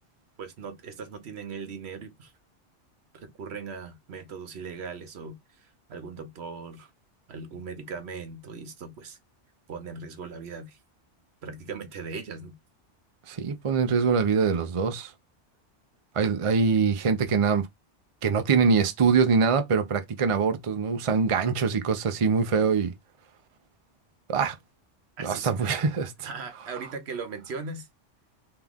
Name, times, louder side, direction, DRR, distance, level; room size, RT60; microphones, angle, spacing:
voice 1, 0.4-2.3 3.1-6.9 7.3-9.2 9.7-10.8 11.4-12.6 25.2-25.9 26.2-27.9, right 5 dB, 65° right, 1.1 m, -39 dB
voice 2, 13.3-15.1 16.2-17.7 18.2-22.9 24.3-24.6 25.2-26.3, right 5 dB, 45° right, 0.4 m, -24 dB
3.6 x 2.9 x 3.5 m
omnidirectional pair, 1.2 m